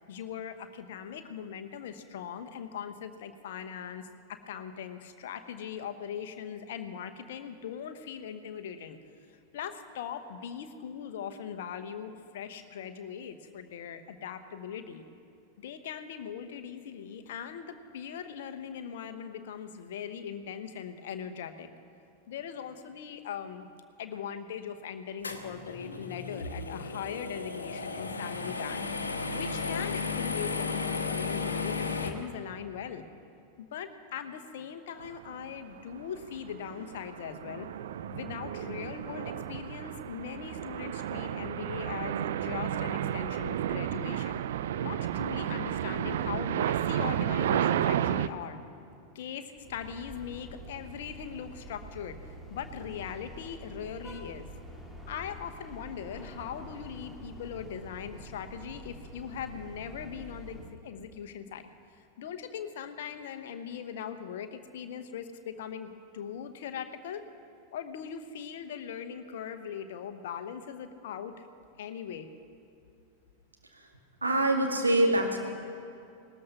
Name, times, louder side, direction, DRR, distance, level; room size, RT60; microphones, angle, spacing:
voice 1, 0.0-9.0 9.5-15.0 15.6-21.7 22.3-23.7 24.0-28.9 29.3-33.1 33.6-37.7 38.1-44.4 44.8-48.6 49.1-52.2 52.5-54.5 55.1-61.7 62.2-65.9 66.1-67.2 67.7-71.5 71.8-72.3, left 8 dB, 55° left, 8 dB, 1.0 m, -40 dB
Bathroom fan, 25.2-32.1, left 4 dB, 75° left, 1.2 m, -34 dB
sound 1, 35.3-35.5 36.0-48.3, right 10 dB, 60° right, 0.4 m, -32 dB
sound 2, 49.6-60.8, right 1 dB, 5° right, 1.8 m, -47 dB
voice 2, 74.2-75.4, right 1 dB, 80° right, 1 dB, 2.1 m, -25 dB
19.0 x 13.0 x 5.8 m, 2.5 s
figure-of-eight pair, 90°, 0 cm